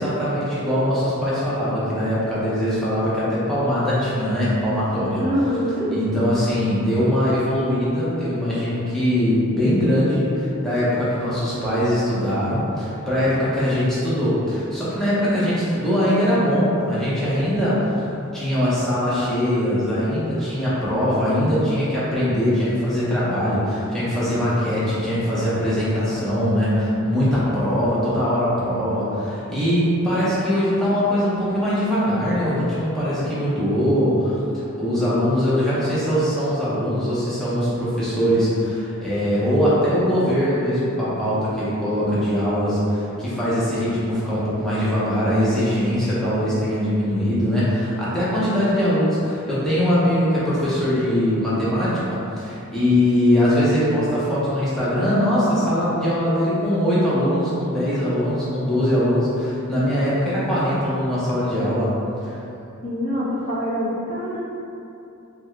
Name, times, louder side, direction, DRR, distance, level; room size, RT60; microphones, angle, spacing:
voice 1, 0.0-5.2 5.9-18.0 18.3-34.4 34.7-61.9 62.2-62.4, equal, ahead, -11 dB, 0.8 m, -21 dB
voice 2, 5.2-5.9 62.8-64.4, equal, 35° left, -10 dB, 1.0 m, -24 dB
3.4 x 2.4 x 3.2 m, 2.7 s
head